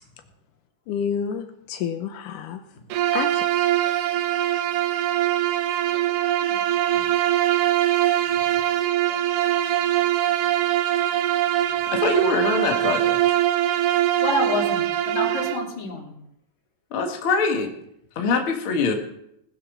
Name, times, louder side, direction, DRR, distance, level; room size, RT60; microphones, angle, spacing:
voice 1, 0.9-2.6 3.1-3.4, left 7 dB, 85° left, 7 dB, 2.5 m, -29 dB
Bowed string instrument, 2.9-15.7, right 13 dB, 85° right, 2.5 m, -22 dB
voice 2, 11.9-13.4 16.9-17.7 18.2-18.9, left 3 dB, 50° left, 3 dB, 2.2 m, -24 dB
voice 3, 14.2-16.1, left 1 dB, 65° left, 0 dB, 4.1 m, -28 dB
19.0 x 8.2 x 6.6 m, 0.78 s
omnidirectional pair, 3.6 m